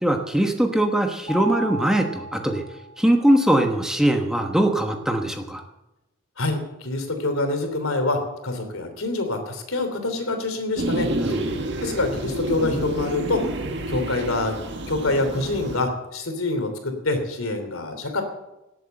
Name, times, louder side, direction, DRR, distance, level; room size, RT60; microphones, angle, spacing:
voice 1, 0.0-2.6 3.0-5.6 11.2-11.6, right 1 dB, 5° right, 3 dB, 1.1 m, -21 dB
Mallet percussion, 1.3-3.3, right 2 dB, 25° left, 1.7 m, -35 dB
voice 2, 6.4-11.4 11.8-13.6 13.9-14.5 14.9-18.2, left 2 dB, 80° left, 6 dB, 3.0 m, -26 dB
sound 1, 10.8-15.8, right 1 dB, 55° right, 1.7 m, -29 dB
18.0 x 8.1 x 7.8 m, 0.95 s
head